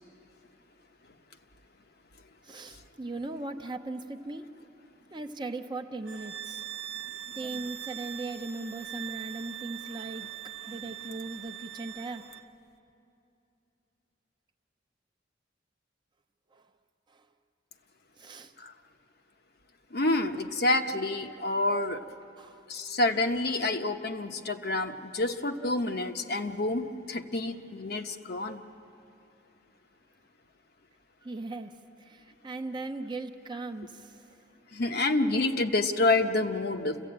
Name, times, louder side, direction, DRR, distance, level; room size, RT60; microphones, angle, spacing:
voice 1, 2.4-4.5 5.1-6.6 7.4-10.3 10.7-12.3 16.5-16.6 17.1-17.3 18.2-18.5 22.4-22.6 31.2-34.3, right 2 dB, 25° right, 6 dB, 0.8 m, -38 dB
sound 1, 6.1-12.5, right 12 dB, 60° right, 0.8 m, -41 dB
voice 2, 19.9-22.0 22.7-28.6 34.7-37.0, left 2 dB, 60° left, 5 dB, 1.0 m, -28 dB
28.0 x 15.5 x 8.7 m, 2.7 s
head